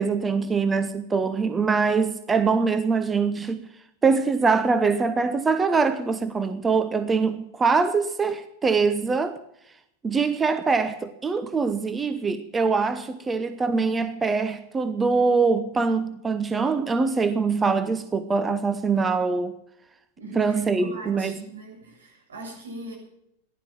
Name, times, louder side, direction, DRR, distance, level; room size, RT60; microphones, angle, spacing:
voice 1, 0.0-3.6 4.0-9.4 10.0-19.5 20.4-21.4, right 4 dB, 20° right, 0.9 m, -23 dB
voice 2, 20.2-23.0, right 2 dB, 80° right, 7.0 m, -40 dB
15.0 x 11.5 x 7.4 m
hypercardioid pair, 95°, 0 cm